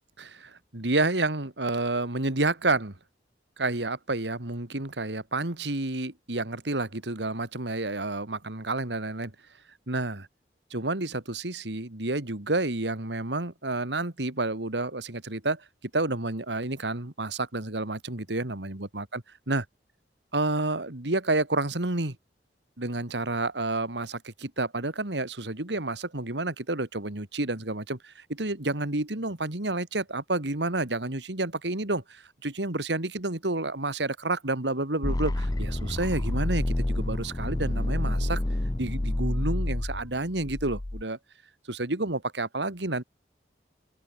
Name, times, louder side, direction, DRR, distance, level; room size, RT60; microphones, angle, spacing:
voice 1, 0.2-2.9 3.6-9.3 9.9-10.3 10.7-15.6 15.9-19.6 20.3-22.2 22.8-38.4 38.8-41.2 41.7-43.0, right 2 dB, 85° right, 2.6 m, -30 dB
sound 1, 35.0-41.0, left 1 dB, 20° left, 0.6 m, -28 dB
open air
head